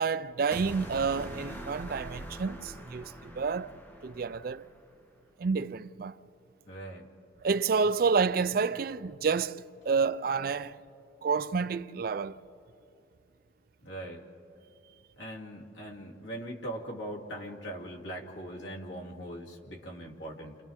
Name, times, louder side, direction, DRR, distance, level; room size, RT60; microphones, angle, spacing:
voice 1, 0.0-3.7 4.0-4.7 5.4-6.1 7.4-10.8 11.2-12.4, right 5 dB, 55° right, 0.4 m, -29 dB
sound 1, 0.5-4.8, right 1 dB, 10° left, 1.4 m, -43 dB
voice 2, 6.7-7.1 13.8-14.2 15.2-20.6, right 1 dB, 85° left, 2.8 m, -41 dB
29.5 x 28.5 x 3.6 m
head